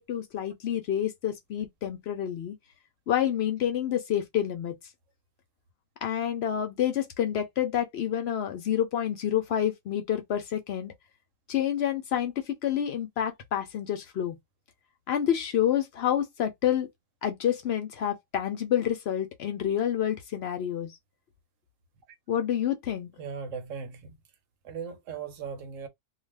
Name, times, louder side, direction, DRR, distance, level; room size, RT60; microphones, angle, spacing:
voice 1, 0.0-2.5 3.1-4.7 6.0-10.9 11.5-14.4 15.1-16.9 17.2-21.0 22.3-23.1, left 10 dB, 65° left, 0.7 m, -28 dB
voice 2, 23.2-24.2 24.6-25.9, right 6 dB, 80° right, 1.0 m, -38 dB
2.4 x 2.2 x 3.2 m
omnidirectional pair, 1.3 m